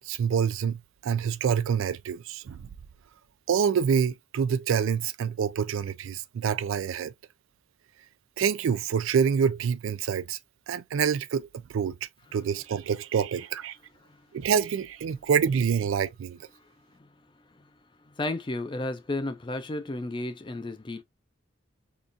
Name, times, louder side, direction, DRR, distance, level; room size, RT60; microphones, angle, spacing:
voice 1, 0.1-2.7 3.5-7.1 8.4-10.4 10.7-12.0 12.3-13.8 14.3-16.4, right 7 dB, 85° right, 0.3 m, -26 dB
voice 2, 18.2-21.0, left 2 dB, 25° left, 0.4 m, -32 dB
3.8 x 2.4 x 2.5 m
head